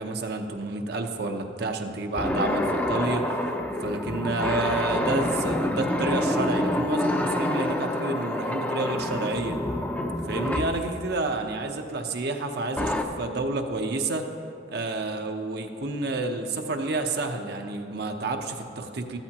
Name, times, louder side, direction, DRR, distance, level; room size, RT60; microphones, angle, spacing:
voice 1, 0.0-3.5 3.8-9.6 10.2-14.2 14.7-19.2, right 2 dB, 60° right, 4 dB, 0.8 m, -29 dB
sound 1, 2.2-10.8 12.8-13.0, left 1 dB, 10° left, 0.6 m, -27 dB
13.5 x 13.5 x 2.9 m, 2.6 s
head